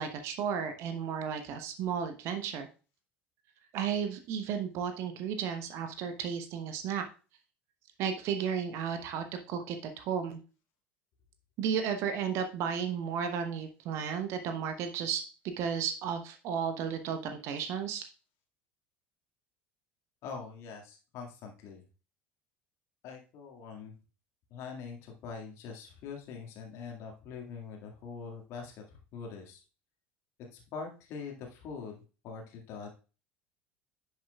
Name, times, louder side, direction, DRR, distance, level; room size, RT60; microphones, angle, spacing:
voice 1, 0.0-2.7 3.7-7.0 8.0-10.4 11.6-18.0, right 7 dB, 50° right, 7 dB, 1.0 m, -33 dB
voice 2, 20.2-21.9 23.0-23.9 24.5-29.6 30.5-33.0, left 5 dB, 50° left, 1 dB, 1.9 m, -43 dB
10.0 x 7.1 x 2.3 m, 0.33 s
figure-of-eight pair, 65°, 6 cm